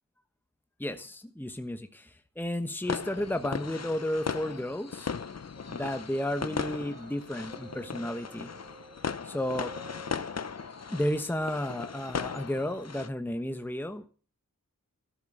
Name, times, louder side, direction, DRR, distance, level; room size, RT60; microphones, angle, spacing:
voice 1, 0.8-5.1 5.7-8.5 9.2-9.7 10.9-14.1, left 1 dB, 5° left, 7 dB, 1.2 m, -33 dB
sound 1, 2.8-13.1, left 6 dB, 50° left, 0.8 m, -37 dB
sound 2, 5.6-11.0, right 1 dB, 25° right, 3.0 m, -52 dB
14.0 x 7.8 x 7.9 m, 0.39 s
wide cardioid pair, 65°, 33 cm